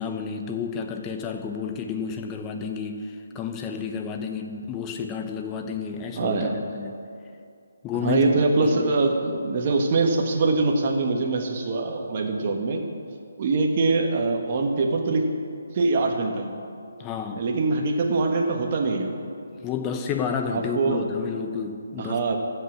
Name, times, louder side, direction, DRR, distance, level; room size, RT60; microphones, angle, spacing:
voice 1, 0.0-7.0 7.8-8.9 17.0-17.4 19.5-22.4, left 6 dB, 15° left, 4 dB, 0.8 m, -31 dB
voice 2, 6.1-6.6 7.9-12.8 13.4-15.3 15.7-16.5 17.3-19.2 20.4-21.0 22.0-22.4, right 3 dB, 35° right, 2 dB, 1.3 m, -23 dB
14.0 x 5.6 x 8.5 m, 2.5 s
hypercardioid pair, 165°, 0 cm